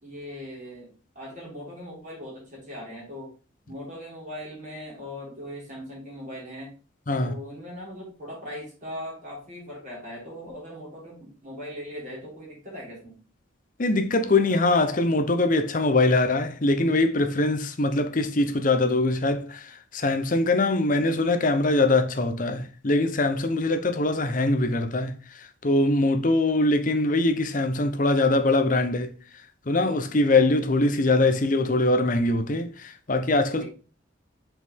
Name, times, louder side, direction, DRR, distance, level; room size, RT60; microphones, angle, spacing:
voice 1, 0.0-3.3 3.7-6.7 7.2-13.2 33.6-33.7, equal, 40° right, 3.5 m, -39 dB
voice 2, 13.8-29.1 29.7-33.6, left 2 dB, 40° left, 0.7 m, -23 dB
6.3 x 4.6 x 3.5 m
head